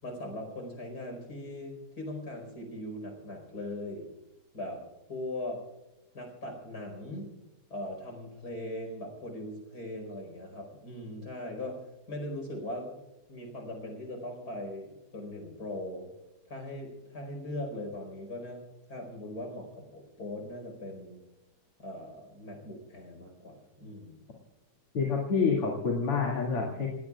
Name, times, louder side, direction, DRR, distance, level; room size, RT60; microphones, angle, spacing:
voice 1, 0.0-4.1 4.5-4.8 5.1-5.6 6.1-7.3 7.7-13.0 13.3-16.1 16.4-18.6 18.9-21.2 21.8-24.2, left 1 dB, 45° left, 3 dB, 5.3 m, -40 dB
voice 2, 24.9-26.9, left 5 dB, 90° left, -3 dB, 3.4 m, -27 dB
28.0 x 18.5 x 2.4 m, 1.0 s
omnidirectional pair, 2.4 m